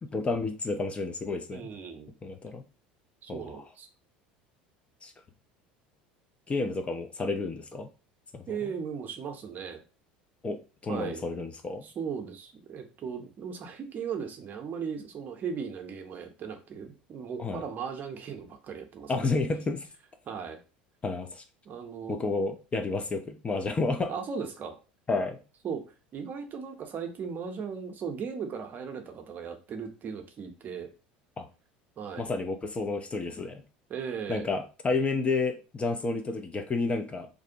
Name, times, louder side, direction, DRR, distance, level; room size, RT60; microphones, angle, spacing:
voice 1, 0.0-1.7 2.2-2.6 3.3-3.6 5.0-5.1 6.5-7.9 8.3-8.6 10.4-11.9 17.4-17.6 19.1-19.9 21.0-21.4 22.1-24.1 25.1-25.4 31.4-31.5 32.2-33.6 34.3-37.3, left 3 dB, 25° left, 6 dB, 0.4 m, -31 dB
voice 2, 1.5-2.1 3.2-3.9 8.5-9.8 10.9-11.2 11.8-19.3 20.3-20.6 21.7-22.2 24.1-24.8 25.6-25.9 26.1-30.9 32.0-32.3 33.9-34.5, right 6 dB, 40° right, 5 dB, 0.6 m, -37 dB
2.5 x 2.1 x 2.6 m, 0.32 s
hypercardioid pair, 75°, 5 cm